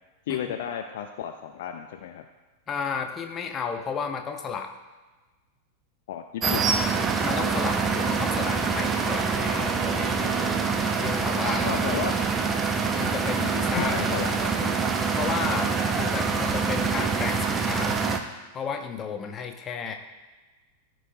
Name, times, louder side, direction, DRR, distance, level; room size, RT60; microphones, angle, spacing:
voice 1, 0.3-2.3 6.1-6.7 11.6-12.1 13.7-14.7, left 9 dB, 55° left, 6 dB, 0.4 m, -33 dB
voice 2, 2.7-4.7 7.2-10.4 11.0-11.9 13.0-14.2 15.2-18.0 18.5-19.9, left 6 dB, 25° left, 5 dB, 0.8 m, -33 dB
sound 1, 6.4-18.2, right 5 dB, 20° right, 0.6 m, -25 dB
14.0 x 4.8 x 2.6 m, 1.2 s
figure-of-eight pair, 90°, 0 cm